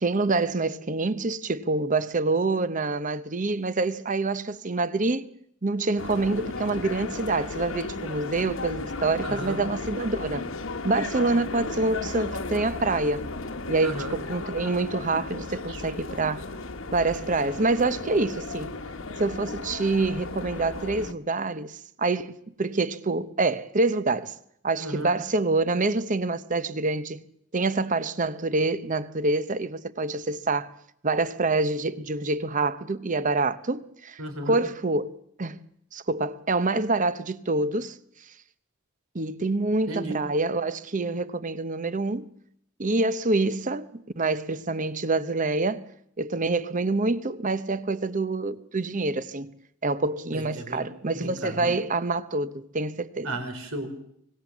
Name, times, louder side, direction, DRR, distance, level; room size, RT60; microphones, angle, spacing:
voice 1, 0.0-5.3 5.6-10.5 10.8-13.2 13.7-16.5 16.9-18.8 19.2-24.3 24.6-27.2 27.5-30.7 31.0-35.6 35.9-37.9 39.1-42.3 42.8-45.8 46.2-49.5 49.8-53.3, right 3 dB, 35° right, 0.8 m, -26 dB
sound 1, 6.0-21.1, left 3 dB, 65° left, 1.2 m, -35 dB
voice 2, 9.2-9.6 13.8-14.2 15.6-15.8 24.8-25.2 34.2-34.6 39.9-40.2 50.3-50.9 51.1-51.7 53.2-54.0, right 1 dB, 75° right, 3.9 m, -34 dB
25.0 x 19.0 x 7.3 m
head